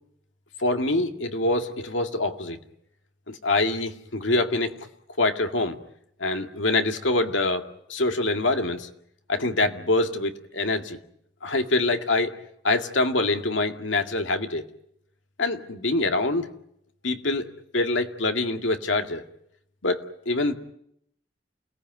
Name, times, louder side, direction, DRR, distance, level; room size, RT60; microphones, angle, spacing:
voice 1, 0.6-2.6 3.3-4.9 5.2-5.8 6.2-8.9 9.3-11.0 11.4-12.3 12.6-14.6 15.4-16.5 17.0-17.5 17.7-19.2 19.8-20.5, left 2 dB, 85° left, 6 dB, 2.2 m, -25 dB
29.5 x 18.5 x 9.3 m, 0.74 s
head